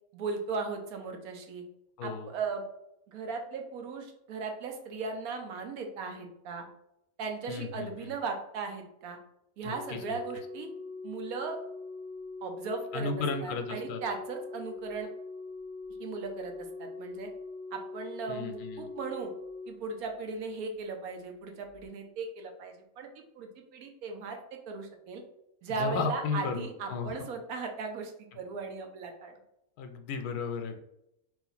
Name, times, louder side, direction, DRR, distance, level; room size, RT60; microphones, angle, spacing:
voice 1, 0.1-1.6 2.0-2.6 3.1-6.6 7.2-9.2 9.6-10.7 11.0-11.6 12.4-13.1 13.4-15.1 16.0-17.3 17.7-19.3 19.7-25.2 25.6-29.3, right 4 dB, 75° right, 4 dB, 1.2 m, -37 dB
voice 2, 2.0-2.3 7.5-8.1 9.6-10.2 12.9-14.0 18.3-18.9 25.7-27.1 29.8-30.8, left 5 dB, 85° left, 6 dB, 1.1 m, -34 dB
Organ, 9.7-20.5 21.7-21.9, left 3 dB, 50° left, 0.4 m, -43 dB
3.2 x 3.0 x 3.9 m, 0.81 s
omnidirectional pair, 1.6 m